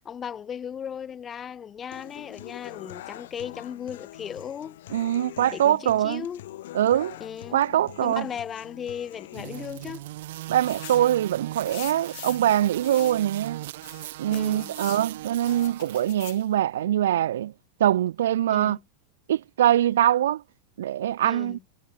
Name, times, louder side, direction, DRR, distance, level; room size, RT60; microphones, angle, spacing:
voice 1, 0.0-4.8 5.5-6.4 7.2-7.6 8.0-10.1 14.3-14.8 18.5-18.8 21.2-21.6, left 8 dB, 20° left, 5.8 m, -36 dB
Human voice / Acoustic guitar, 1.9-9.9, left 14 dB, 75° left, 4.0 m, -44 dB
voice 2, 4.9-6.2 6.7-7.2 7.5-8.3 10.5-13.6 14.2-17.5 17.8-18.8 19.3-20.4 20.8-21.6, right 12 dB, 90° right, 0.5 m, -23 dB
sound 1, 9.3-16.5, right 16 dB, 65° right, 3.6 m, -39 dB
sound 2, 10.7-11.1 11.7-12.5 12.8-13.2 13.8-15.1 15.5-16.4, left 25 dB, 55° left, 1.5 m, -42 dB
supercardioid pair, 155°, 0 cm